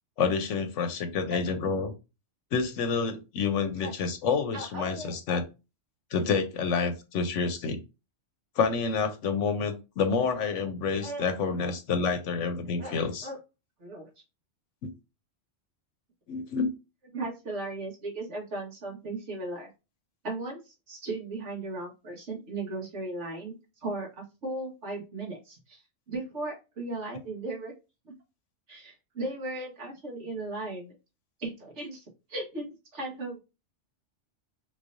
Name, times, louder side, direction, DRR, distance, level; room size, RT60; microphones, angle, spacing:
voice 1, 0.2-1.9 2.5-5.5 6.1-7.8 8.6-13.3 14.8-14.9 16.3-16.7, left 5 dB, 80° left, 7 dB, 1.0 m, -28 dB
voice 2, 4.5-5.1 11.0-11.3 11.6-11.7 12.8-13.4 13.8-14.1 17.1-19.7 20.2-23.5 23.8-25.8 26.1-27.7 28.0-28.1 28.7-30.9 31.4-32.0 32.3-33.4, right 2 dB, 70° right, -2 dB, 1.8 m, -36 dB
3.7 x 3.2 x 2.6 m, 0.28 s
omnidirectional pair, 1.3 m